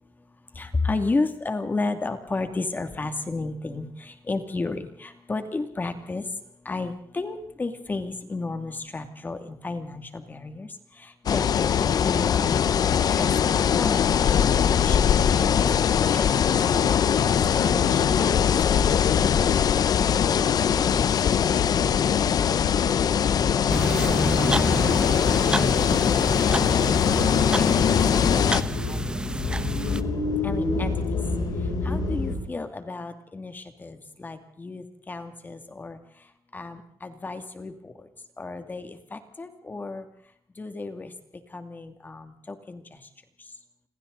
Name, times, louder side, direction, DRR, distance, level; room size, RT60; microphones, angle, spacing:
voice 1, 0.6-6.3 6.6-12.6 13.1-15.6 16.0-16.5 16.8-16.9 17.3-19.6 20.3-22.8 23.1-23.6 24.3-26.8 27.5-29.0 30.4-31.2 31.8-36.0 36.5-37.9 38.4-40.0 40.6-41.1 41.5-43.0, left 3 dB, 25° left, 7 dB, 2.5 m, -33 dB
sound 1, 11.3-28.6, left 8 dB, 65° left, 1.0 m, -21 dB
sound 2, 14.7-32.3, left 3 dB, 80° left, 7.2 m, -32 dB
sound 3, 23.7-30.0, right 2 dB, 10° right, 1.1 m, -29 dB
29.5 x 26.0 x 4.1 m, 0.66 s
cardioid pair, 125°, 7 cm